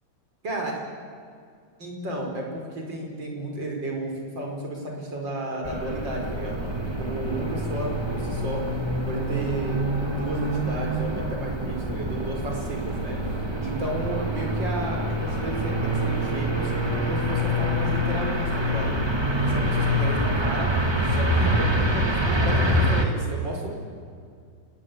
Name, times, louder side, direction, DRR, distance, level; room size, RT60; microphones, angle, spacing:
voice 1, 0.4-0.8 1.8-13.2 13.6-16.7 17.1-19.1 19.4-20.7 21.0-23.7, right 1 dB, 30° right, 0 dB, 5.5 m, -33 dB
sound 1, 5.6-23.0, equal, 15° right, 1.0 m, -26 dB
28.0 x 20.5 x 8.3 m, 2.2 s
omnidirectional pair, 3.9 m